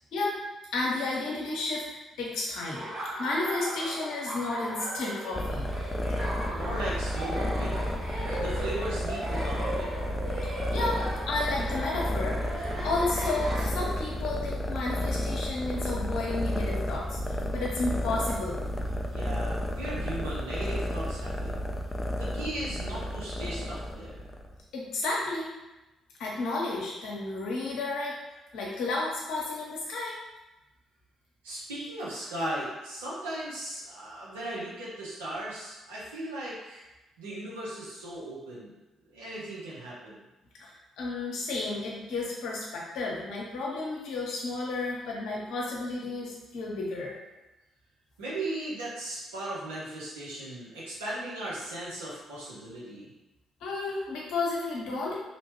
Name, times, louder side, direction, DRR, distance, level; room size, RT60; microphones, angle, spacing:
voice 1, 0.7-1.9 2.2-2.9 3.2-5.7 10.5-18.6 24.7-25.5 26.2-28.2 28.5-30.2 40.6-47.1 53.6-55.1, left 3 dB, 65° left, -3 dB, 0.7 m, -32 dB
Laughter, 2.7-13.6, right 1 dB, 55° right, 1.0 m, -37 dB
sound 1, 5.3-24.6, left 1 dB, 15° left, 0.4 m, -32 dB
voice 2, 6.5-7.9 8.4-10.2 19.1-21.6 22.2-24.2 31.4-36.9 37.2-38.7 39.1-40.2 48.2-53.1, right 1 dB, 80° right, -7 dB, 0.8 m, -37 dB
2.9 x 2.2 x 2.9 m, 1.0 s
figure-of-eight pair, 45°, 0 cm